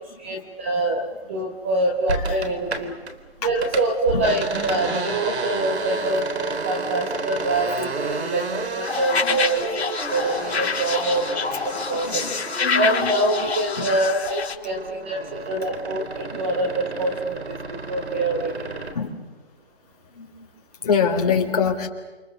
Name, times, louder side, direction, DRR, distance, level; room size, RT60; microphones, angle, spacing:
voice 1, 0.2-2.9 3.4-6.3 6.6-11.3 11.9-12.2 12.7-18.5, right 2 dB, 10° right, 2 dB, 1.0 m, -25 dB
sound 1, 2.1-3.1 3.4-13.8 14.1-19.0, right 3 dB, 75° right, 3.8 m, -31 dB
sound 2, 8.8-14.5, left 5 dB, 75° left, 3.9 m, -27 dB
voice 2, 11.9-12.3 12.6-13.1 13.8-13.9 16.3-16.4 18.9-19.1 20.1-20.5 20.8-21.9, left 6 dB, 35° left, 1 dB, 3.9 m, -25 dB
28.5 x 28.0 x 6.7 m, 1.2 s
hypercardioid pair, 175°, 33 cm